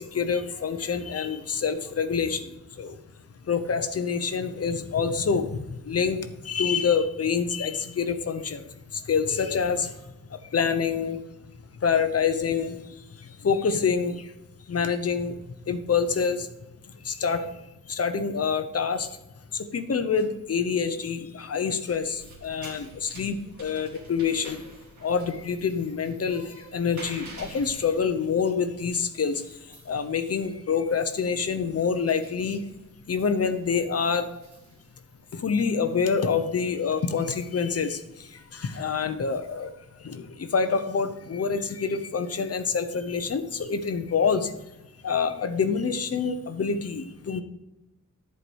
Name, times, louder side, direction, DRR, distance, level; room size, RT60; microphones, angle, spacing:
voice 1, 0.0-3.0 3.4-8.6 8.9-10.0 10.3-11.2 11.8-14.3 14.7-15.4 15.6-16.5 17.0-17.5 17.9-19.1 19.5-24.6 25.0-32.6 33.1-34.3 35.3-44.5 45.0-47.4, left 6 dB, 45° left, 9 dB, 0.8 m, -27 dB
sound 1, 21.9-40.0, right 2 dB, 60° right, 2.4 m, -51 dB
11.0 x 4.7 x 6.3 m, 0.95 s
wide cardioid pair, 180°, 33 cm